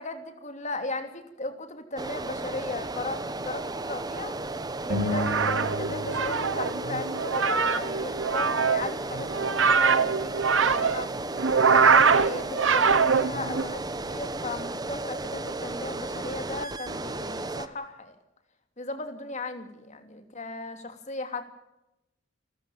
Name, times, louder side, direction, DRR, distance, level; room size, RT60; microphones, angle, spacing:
voice 1, 0.0-4.4 4.8-10.3 10.6-11.1 11.7-13.8 14.1-18.2 18.8-21.4, left 2 dB, 35° left, 7 dB, 3.0 m, -36 dB
sound 1, 2.0-17.7, right 2 dB, 20° right, 1.1 m, -34 dB
sound 2, 4.9-7.5, left 1 dB, 50° right, 3.6 m, -33 dB
sound 3, 4.9-13.6, right 5 dB, 75° right, 1.2 m, -23 dB
29.0 x 14.5 x 7.4 m, 0.90 s
head